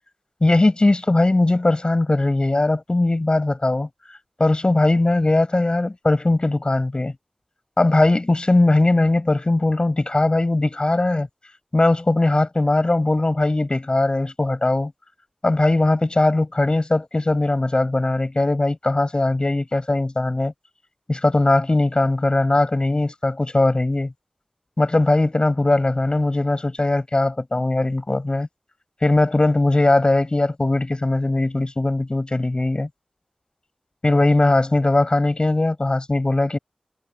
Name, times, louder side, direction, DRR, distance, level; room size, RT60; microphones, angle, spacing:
voice 1, 0.4-3.9 4.4-7.1 7.8-11.3 11.7-14.9 15.4-20.5 21.1-24.1 24.8-28.5 29.0-32.9 34.0-36.6, left 2 dB, 40° left, 5.7 m, -19 dB
wide cardioid pair, 65°, 2 cm